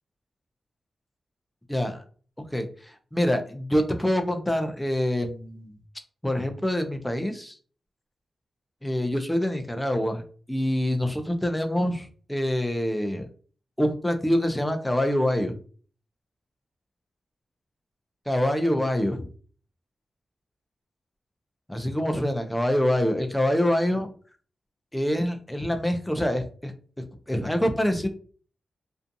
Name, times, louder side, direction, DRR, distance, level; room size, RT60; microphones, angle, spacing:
voice 1, 1.7-2.0 2.5-5.8 6.2-7.6 8.8-10.2 10.5-13.3 13.8-15.5 18.3-19.3 21.7-24.1 24.9-26.7 27.3-28.1, left 1 dB, 5° left, 6 dB, 0.4 m, -25 dB
2.6 x 2.3 x 2.5 m, 0.42 s
wide cardioid pair, 145°, 0 cm